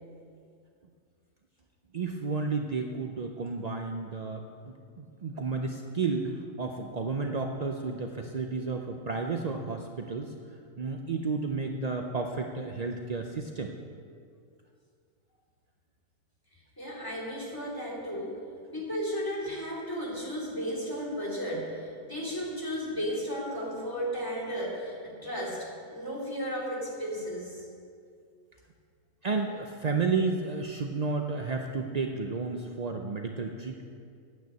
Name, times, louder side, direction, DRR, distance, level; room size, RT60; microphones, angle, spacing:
voice 1, 1.9-10.3 10.8-13.7 29.2-33.9, right 4 dB, 60° right, 3 dB, 0.4 m, -32 dB
voice 2, 16.8-18.4 18.7-27.7, equal, 15° left, -4 dB, 3.0 m, -34 dB
9.3 x 9.0 x 8.2 m, 2.2 s
omnidirectional pair, 1.6 m